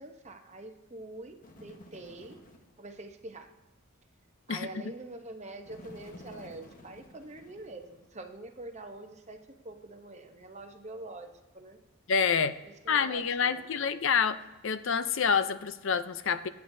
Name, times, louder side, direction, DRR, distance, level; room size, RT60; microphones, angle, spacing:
voice 1, 0.0-2.4 2.8-3.5 4.5-9.4 9.6-11.8 12.6-14.0, right 2 dB, 30° right, 6 dB, 0.9 m, -45 dB
Bird, 1.4-2.8 5.6-8.2, left 1 dB, 40° left, 1.2 m, -52 dB
voice 2, 12.1-12.6 12.9-14.4 14.6-16.5, left 6 dB, 65° left, 12 dB, 0.6 m, -27 dB
23.5 x 8.0 x 2.7 m, 1.2 s
head